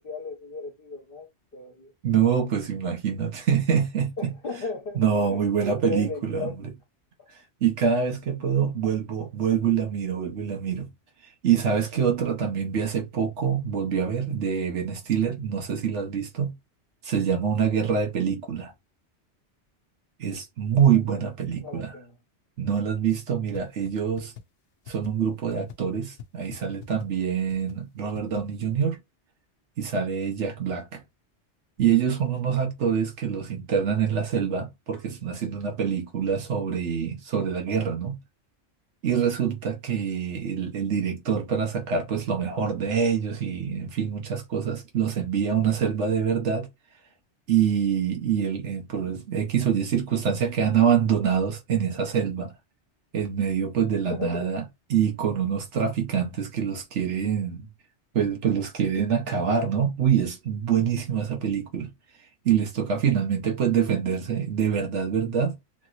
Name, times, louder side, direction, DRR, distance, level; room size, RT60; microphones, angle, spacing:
voice 1, 0.0-1.9 4.2-6.6 20.7-21.2 21.6-22.1 54.1-54.5, left 2 dB, 55° left, 1.2 m, -36 dB
voice 2, 2.0-4.3 4.9-6.5 7.6-10.9 11.4-16.5 17.0-18.7 20.2-22.0 22.6-24.3 24.9-29.0 29.8-31.0 31.8-38.2 39.0-46.7 47.5-52.5 53.1-54.6 54.9-57.7 58.1-61.9 62.4-65.6, right 7 dB, 80° right, 1.2 m, -25 dB
sound 1, 23.5-23.6 23.9-24.0 24.2-24.4 24.8-25.1 25.5-25.7 26.2-26.3 26.5-26.6 26.8-27.1 27.5-27.7 28.1-28.4, left 9 dB, 90° left, 1.0 m, -40 dB
3.3 x 2.9 x 2.4 m
omnidirectional pair, 1.2 m